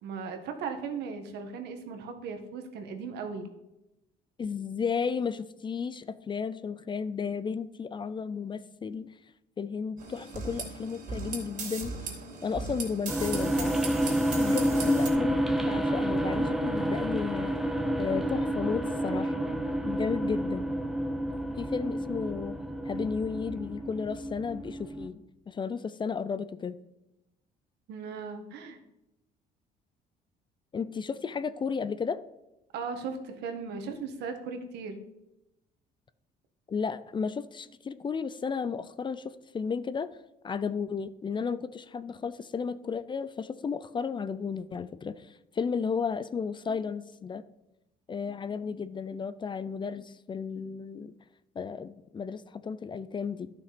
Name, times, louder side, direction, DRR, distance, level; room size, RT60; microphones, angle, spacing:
voice 1, 0.0-3.5 14.5-14.8 27.9-28.8 32.7-35.0, right 5 dB, 80° right, 6 dB, 1.6 m, -37 dB
voice 2, 4.4-9.1 9.6-12.0 12.4-13.8 14.4-17.5 18.0-19.4 19.8-20.7 21.6-22.6 22.9-26.7 30.7-32.2 36.7-40.1 40.4-47.4 48.1-51.1 51.6-53.5, left 6 dB, 30° left, 15 dB, 0.5 m, -33 dB
sound 1, 10.0-15.1, right 4 dB, 50° right, 3.1 m, -38 dB
sound 2, 13.1-25.1, right 1 dB, ahead, 0.9 m, -29 dB
11.5 x 6.1 x 5.1 m, 0.92 s
cardioid pair, 110°, 17 cm